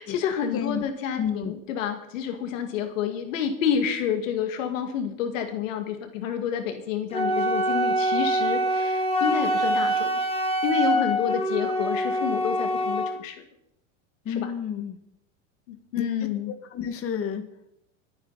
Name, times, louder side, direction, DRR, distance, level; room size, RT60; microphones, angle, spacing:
voice 1, 0.0-10.1 10.6-13.3 14.3-14.5 15.7-16.5, left 8 dB, 80° left, 6 dB, 2.2 m, -29 dB
voice 2, 0.5-0.8 1.2-1.5 14.2-15.0 16.0-16.1 16.5-17.5, left 8 dB, 35° left, 6 dB, 2.0 m, -30 dB
Wind instrument woodwind instrument, 7.1-13.2, right 1 dB, 15° left, 1.9 m, -25 dB
26.0 x 9.0 x 4.2 m, 0.79 s
supercardioid pair, 115°, 38 cm